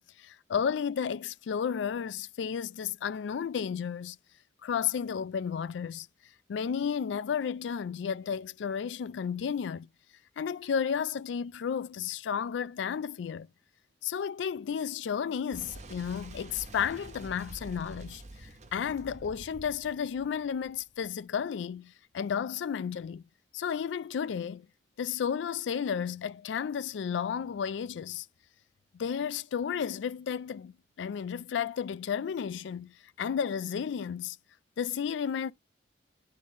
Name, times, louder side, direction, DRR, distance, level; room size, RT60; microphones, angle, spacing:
voice 1, 0.0-4.2 4.6-6.1 6.5-9.9 10.4-13.5 14.0-23.2 23.5-24.7 25.0-28.3 28.9-34.4 34.8-35.5, left 7 dB, 80° left, 0.3 m, -33 dB
Boom, 15.5-21.1, right 2 dB, 40° right, 1.0 m, -47 dB
10.5 x 3.8 x 3.6 m
head